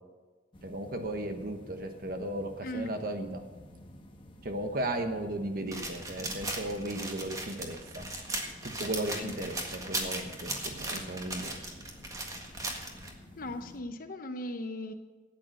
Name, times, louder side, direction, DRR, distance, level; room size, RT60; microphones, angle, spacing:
sound 1, 0.5-13.8, equal, 25° left, 1.1 m, -52 dB
voice 1, 0.6-3.4 4.4-8.0 8.6-11.5, right 1 dB, 50° right, 6 dB, 1.1 m, -35 dB
sound 2, 5.7-13.1, right 2 dB, 20° right, 1.7 m, -38 dB
voice 2, 13.4-14.9, left 1 dB, 50° left, 6 dB, 0.8 m, -38 dB
13.0 x 9.1 x 6.7 m, 1.3 s
head